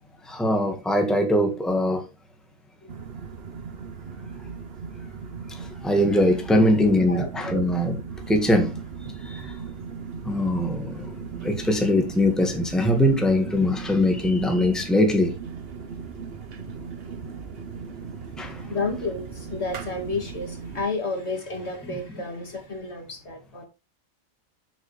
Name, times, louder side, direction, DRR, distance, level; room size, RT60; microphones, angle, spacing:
voice 1, 0.2-2.0 5.5-8.0 8.3-9.6 10.2-15.3 18.4-18.7 21.8-22.0, left 1 dB, ahead, 1.7 m, -22 dB
sound 1, 2.9-20.9, right 5 dB, 50° right, 1.1 m, -38 dB
voice 2, 6.8-7.7 16.6-17.4 18.3-23.7, left 3 dB, 55° left, 2.2 m, -32 dB
8.0 x 7.9 x 3.3 m
omnidirectional pair, 1.4 m